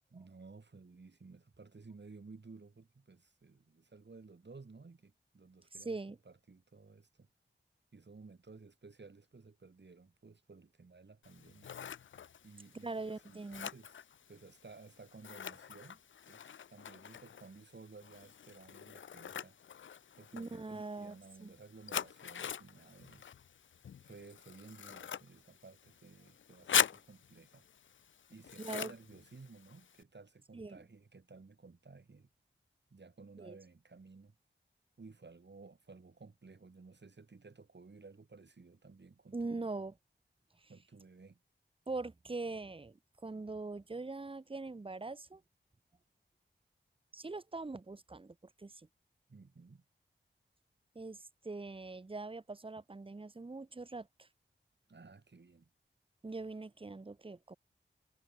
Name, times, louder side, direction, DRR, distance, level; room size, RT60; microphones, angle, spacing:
voice 1, 0.1-6.0 6.2-7.3 7.9-11.7 12.4-16.0 16.3-19.6 20.2-23.3 24.0-27.6 28.3-32.3 32.9-34.3 35.0-39.7 40.7-41.4 49.3-49.8 54.9-55.7, right 4 dB, 60° right, 6.7 m, -56 dB
voice 2, 5.8-6.2 12.8-13.7 20.3-21.1 21.4-21.5 28.6-28.9 30.5-30.8 33.4-33.6 39.3-39.9 40.6-40.7 41.9-45.4 47.1-48.9 50.9-54.3 56.2-57.6, right 3 dB, 25° right, 0.9 m, -42 dB
Scissors, 11.2-30.0, left 8 dB, 75° left, 0.5 m, -42 dB
cardioid pair, 50°, 20 cm